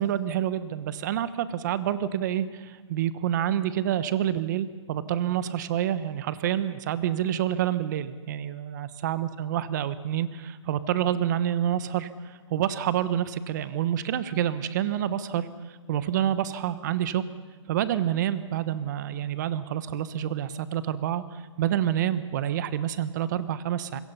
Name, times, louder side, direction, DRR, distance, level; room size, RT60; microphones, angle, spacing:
voice 1, 0.0-17.2 17.7-24.0, right 11 dB, 35° right, 14 dB, 1.1 m, -28 dB
27.0 x 22.0 x 5.7 m, 1.4 s
hypercardioid pair, 160°, 16 cm